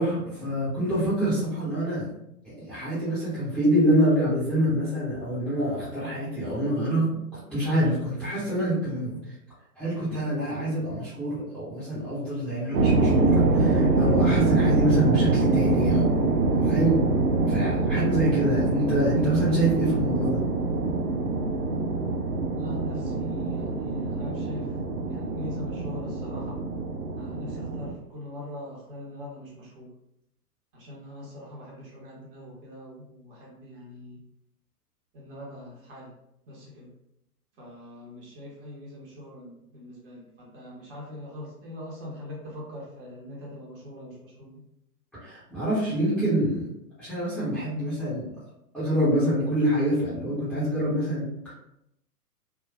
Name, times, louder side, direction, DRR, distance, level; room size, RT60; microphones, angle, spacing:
voice 1, 0.0-2.1 2.4-7.1 7.5-9.3 9.8-16.3 16.6-17.0 17.4-20.4 45.2-46.7 47.0-48.3 48.7-51.5, right 1 dB, 5° left, -13 dB, 1.0 m, -26 dB
sound 1, 12.7-27.9, right 3 dB, 85° right, 0.7 m, -24 dB
voice 2, 22.6-24.8 25.1-26.6 27.2-29.9 30.7-34.2 35.1-36.1 36.5-36.9 37.6-44.6, left 1 dB, 35° right, -4 dB, 1.1 m, -42 dB
3.5 x 2.4 x 2.4 m, 0.79 s
figure-of-eight pair, 120°, 47 cm